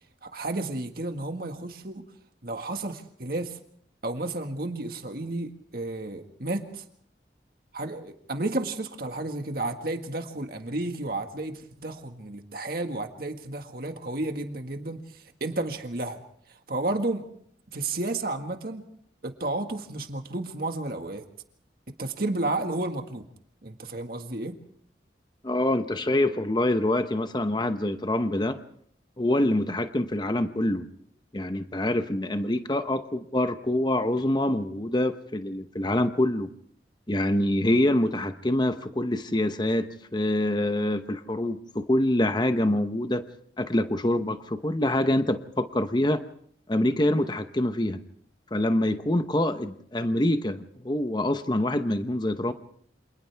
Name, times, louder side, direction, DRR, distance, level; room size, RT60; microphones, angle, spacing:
voice 1, 0.2-2.0 2.4-3.6 4.0-6.8 7.7-16.2 16.7-17.2 17.7-18.8 19.2-21.2 22.0-23.3 23.6-24.5, right 2 dB, 55° right, 5 dB, 1.8 m, -32 dB
voice 2, 25.4-28.6 29.2-30.9 31.3-36.5 37.1-43.2 43.6-46.2 46.7-48.0 48.5-52.5, left 1 dB, 25° left, 9 dB, 0.9 m, -25 dB
29.0 x 27.0 x 3.5 m, 0.62 s
head